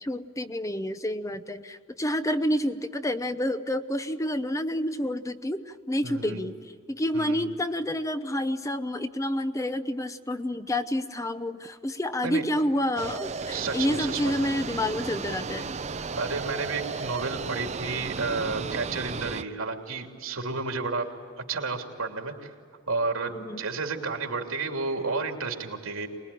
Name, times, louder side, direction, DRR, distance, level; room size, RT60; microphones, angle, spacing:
voice 1, 0.0-6.5 6.9-15.7 23.3-23.6, left 1 dB, 15° left, 10 dB, 0.7 m, -29 dB
voice 2, 6.0-6.4 7.1-7.4 12.2-12.4 13.5-14.3 16.1-21.1 21.5-22.5 22.9-26.1, right 4 dB, 90° right, 3 dB, 3.0 m, -31 dB
sound 1, 13.0-19.4, right 4 dB, 35° right, 0.7 m, -34 dB
25.0 x 21.0 x 10.0 m, 2.2 s
head